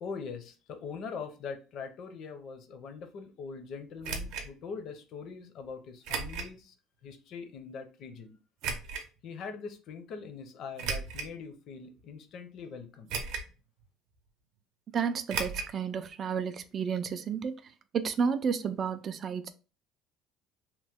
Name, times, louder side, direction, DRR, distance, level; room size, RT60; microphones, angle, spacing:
voice 1, 0.0-6.7 7.0-8.4 9.2-13.1, left 5 dB, 50° left, 0.6 m, -42 dB
sound 1, 4.0-4.5 6.0-6.5 7.1-7.2 8.6-9.1 10.8-11.4 12.0-12.1 13.1-13.6 13.8-13.9 15.3-15.7 16.0-16.1 16.4-16.5, right 5 dB, 75° right, 0.6 m, -35 dB
voice 2, 14.9-17.6 17.9-19.5, right 6 dB, 35° right, 0.3 m, -31 dB
2.9 x 2.1 x 3.4 m
cardioid pair, 150°, 0 cm